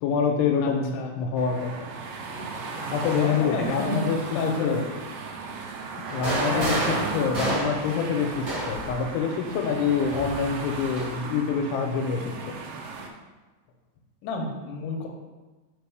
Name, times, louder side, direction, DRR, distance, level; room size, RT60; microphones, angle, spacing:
voice 1, 0.0-1.9 2.3-2.5 2.9-4.8 6.1-12.5, left 6 dB, 90° left, 4 dB, 2.7 m, -26 dB
voice 2, 0.6-1.1 2.8-5.0 6.5-6.8 14.2-15.1, left 3 dB, 75° left, 1 dB, 2.0 m, -31 dB
sound 1, 1.4-13.1, right 4 dB, 90° right, 1.9 m, -36 dB
sound 2, 6.1-9.0 10.1-11.1, right 1 dB, 35° right, 1.9 m, -30 dB
5.4 x 4.1 x 4.6 m, 1.2 s
omnidirectional pair, 4.7 m